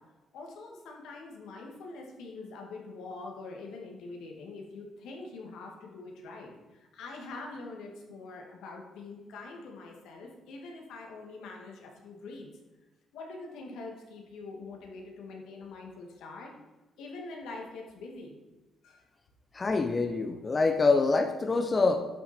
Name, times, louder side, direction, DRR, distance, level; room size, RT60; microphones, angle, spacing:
voice 1, 0.3-12.5 13.1-16.5 17.0-18.3 18.8-19.0, left 3 dB, 85° left, 0 dB, 2.0 m, -44 dB
voice 2, 19.5-22.1, left 3 dB, 30° left, 6 dB, 0.7 m, -25 dB
10.5 x 6.3 x 4.4 m, 1.1 s
cardioid pair, 90°, 0 cm